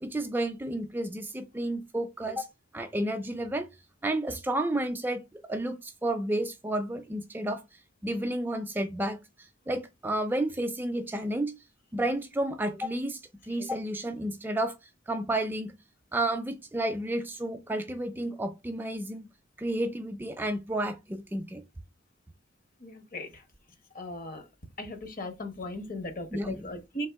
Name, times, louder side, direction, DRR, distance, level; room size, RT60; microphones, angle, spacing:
voice 1, 0.0-2.5 2.7-3.7 4.0-5.2 5.5-7.6 8.0-9.2 9.7-11.5 11.9-13.2 13.5-14.8 15.1-15.7 16.1-19.3 19.6-21.6 26.3-26.8, right 1 dB, 10° right, 0.3 m, -31 dB
voice 2, 22.8-23.4 23.9-24.4 24.8-27.1, left 1 dB, 45° left, 0.9 m, -38 dB
3.5 x 2.8 x 4.5 m
head